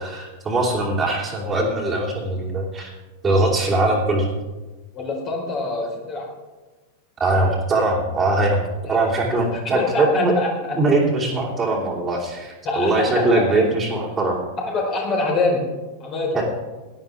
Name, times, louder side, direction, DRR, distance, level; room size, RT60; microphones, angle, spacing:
voice 1, 0.0-2.9 3.2-4.3 7.2-8.6 8.9-10.3 10.7-14.4 16.3-16.4, right 2 dB, 20° right, -5 dB, 3.0 m, -21 dB
voice 2, 4.9-6.3 8.9-9.0 9.7-10.8 12.6-13.6 14.7-15.6 16.0-16.3, left 2 dB, 35° left, -1 dB, 4.4 m, -25 dB
18.0 x 12.0 x 3.5 m, 1.2 s
figure-of-eight pair, 90°, 0 cm